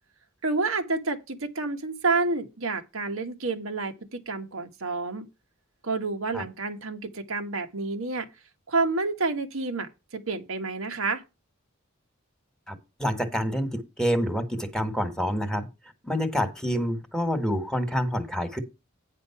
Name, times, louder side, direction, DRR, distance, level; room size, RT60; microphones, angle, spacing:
voice 1, 0.4-5.3 5.8-8.3 8.7-11.2, right 3 dB, 85° right, 1.3 m, -29 dB
voice 2, 12.7-15.7 16.0-18.6, equal, 5° left, 1.4 m, -27 dB
9.5 x 5.2 x 5.7 m
head